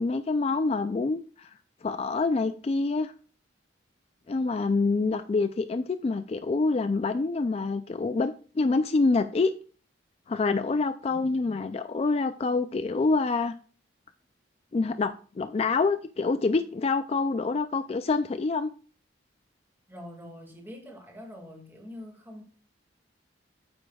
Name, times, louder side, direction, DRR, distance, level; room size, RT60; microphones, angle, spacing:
voice 1, 0.0-1.5 1.8-3.1 4.3-9.5 10.3-13.5 14.7-18.7, left 3 dB, 35° left, 0.3 m, -26 dB
voice 2, 11.1-11.8 19.9-22.4, left 1 dB, 10° right, 1.9 m, -45 dB
9.1 x 8.0 x 2.3 m
head